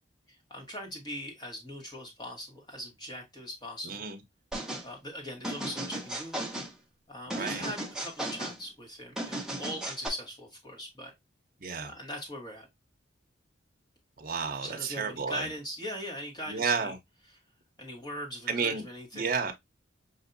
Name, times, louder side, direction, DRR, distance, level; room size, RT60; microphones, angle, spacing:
voice 1, 0.3-4.0 4.8-6.4 7.1-11.1 11.8-12.7 14.6-16.9 17.3-17.4 17.8-19.5, equal, 20° left, 1.3 m, -40 dB
voice 2, 3.8-4.2 7.3-7.6 11.6-11.9 14.2-15.5 16.5-17.0 18.5-18.8 19.1-19.5, right 5 dB, 45° right, 0.8 m, -31 dB
sound 1, 4.5-4.9 5.4-6.7 7.3-8.6 9.2-10.1, right 1 dB, 5° right, 0.8 m, -35 dB
5.6 x 2.6 x 2.5 m
head